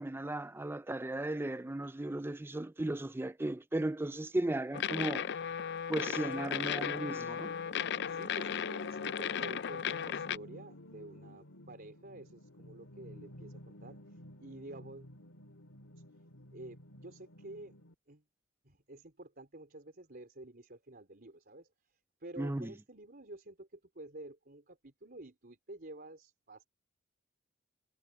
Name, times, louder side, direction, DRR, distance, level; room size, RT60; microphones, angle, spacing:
voice 1, 0.0-5.3 5.9-7.5 22.4-22.7, right 1 dB, 10° right, 0.4 m, -36 dB
sound 1, 4.7-10.4, left 8 dB, 55° left, 0.5 m, -36 dB
sound 2, 5.9-17.9, left 1 dB, 90° left, 2.3 m, -53 dB
voice 2, 8.1-15.1 15.9-16.0 16.5-17.7 18.1-18.2 18.6-26.6, right 2 dB, 50° right, 4.0 m, -50 dB
head